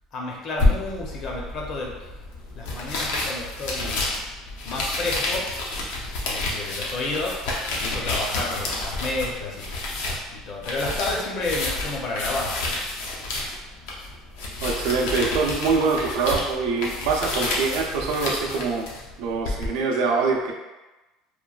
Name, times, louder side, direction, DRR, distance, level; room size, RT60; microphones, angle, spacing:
voice 1, 0.1-1.9 2.5-4.1 4.6-5.4 6.2-7.4 7.7-9.7 10.3-12.5, left 2 dB, 40° left, -2 dB, 0.6 m, -30 dB
sound 1, 0.6-19.7, left 2 dB, 85° left, 0.6 m, -29 dB
voice 2, 14.6-18.9 19.2-20.5, right 4 dB, 80° right, 0 dB, 0.4 m, -24 dB
3.0 x 2.2 x 2.3 m, 1.1 s
cardioid pair, 150°, 0 cm